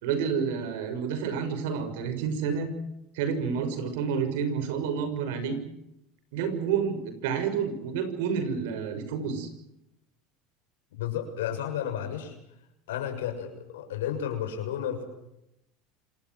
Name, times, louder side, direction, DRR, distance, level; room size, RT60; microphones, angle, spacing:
voice 1, 0.0-2.7 3.1-5.6 6.3-9.5, right 6 dB, 80° right, 10 dB, 6.3 m, -29 dB
voice 2, 10.9-12.3 12.9-15.0, left 9 dB, 90° left, 5 dB, 6.8 m, -32 dB
27.0 x 19.5 x 7.9 m, 0.85 s
supercardioid pair, 105°, 0 cm